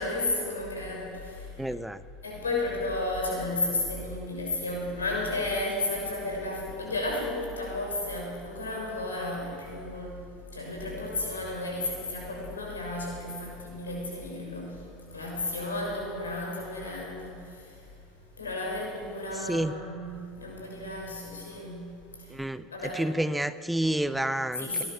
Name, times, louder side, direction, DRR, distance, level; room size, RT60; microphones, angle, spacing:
voice 1, 0.0-1.8 2.2-17.9 18.4-22.4 22.7-23.0 24.6-24.8, left 2 dB, 85° left, -1 dB, 6.6 m, -33 dB
voice 2, 1.6-2.0 19.4-19.7 22.3-22.6 22.9-24.8, right 1 dB, 5° right, 14 dB, 0.7 m, -29 dB
22.5 x 19.0 x 6.3 m, 2.4 s
figure-of-eight pair, 70°, 0 cm